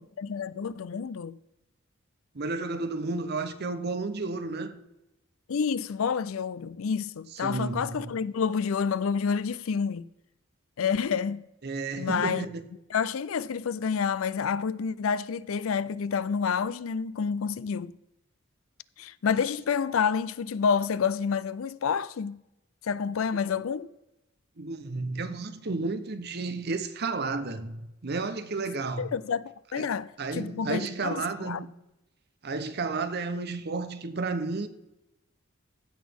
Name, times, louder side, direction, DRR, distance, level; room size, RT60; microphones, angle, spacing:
voice 1, 0.0-1.3 5.5-10.1 10.8-11.5 12.0-12.5 12.9-18.0 19.0-22.4 22.8-23.9 29.0-31.7, left 6 dB, 90° left, 0.4 m, -29 dB
voice 2, 2.3-4.8 7.4-8.2 11.6-12.6 24.6-29.1 29.8-29.9 30.2-31.6 32.4-34.7, right 3 dB, 55° right, 0.9 m, -32 dB
15.5 x 6.1 x 3.5 m
head